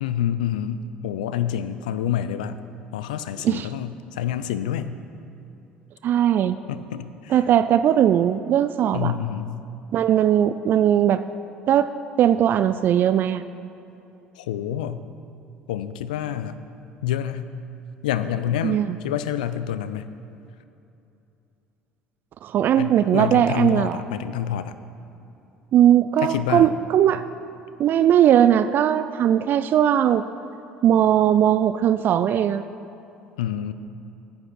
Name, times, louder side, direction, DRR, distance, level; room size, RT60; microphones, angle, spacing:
voice 1, 0.0-2.6 2.9-5.0 6.7-7.4 8.9-9.5 14.4-15.0 15.7-16.6 17.0-17.5 18.0-20.1 22.8-24.7 26.2-26.7 33.4-33.7, left 10 dB, 80° left, 12 dB, 0.4 m, -27 dB
voice 2, 6.0-6.6 7.3-9.1 9.9-11.2 11.7-13.4 18.6-19.0 22.4-24.0 25.7-27.2 27.8-30.2 30.8-32.6, right 10 dB, 50° right, 12 dB, 0.3 m, -19 dB
9.5 x 8.6 x 6.0 m, 2.8 s
hypercardioid pair, 65°, 4 cm